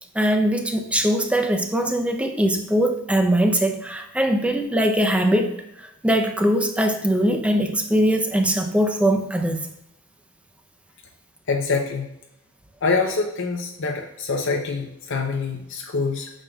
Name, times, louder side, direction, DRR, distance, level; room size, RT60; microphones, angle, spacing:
voice 1, 0.1-5.6 6.0-9.7, right 1 dB, 5° right, 5 dB, 0.6 m, -21 dB
voice 2, 11.5-12.1 12.8-16.3, left 4 dB, 60° left, 2 dB, 0.7 m, -25 dB
8.8 x 6.3 x 2.3 m, 0.86 s
head